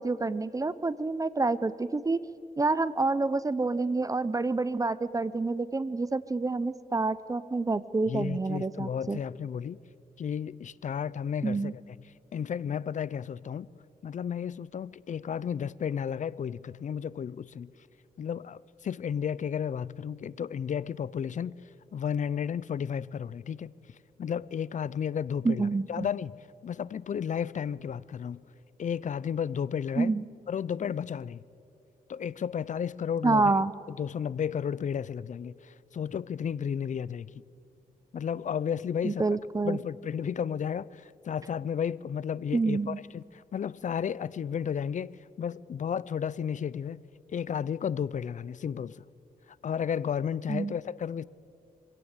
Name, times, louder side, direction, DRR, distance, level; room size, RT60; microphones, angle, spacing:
voice 1, 0.0-2.2 2.6-9.2 11.4-11.7 25.4-26.1 30.0-30.3 33.2-33.7 39.0-39.8 42.5-43.0 50.5-50.7, right 3 dB, 25° right, 0.6 m, -28 dB
voice 2, 8.1-9.8 10.2-11.8 12.3-13.7 14.0-17.7 18.2-21.6 21.9-23.7 24.2-26.4 26.6-28.4 28.8-30.1 30.5-31.4 32.1-33.5 34.0-37.3 38.1-39.2 39.6-47.0 47.3-49.0 49.6-51.2, left 8 dB, 55° left, 0.5 m, -33 dB
24.5 x 17.0 x 8.0 m
wide cardioid pair, 105°, 15 cm